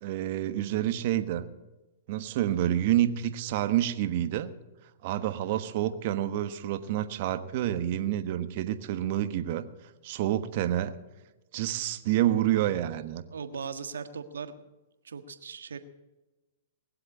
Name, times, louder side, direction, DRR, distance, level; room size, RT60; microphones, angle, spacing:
voice 1, 0.0-1.4 2.1-4.5 5.0-9.6 10.0-10.9 11.5-13.2, right 12 dB, 50° right, 10 dB, 1.3 m, -28 dB
voice 2, 13.3-14.6 15.0-15.8, right 6 dB, 85° right, 9 dB, 1.5 m, -38 dB
20.5 x 7.8 x 8.6 m, 1.1 s
hypercardioid pair, 125°, 0 cm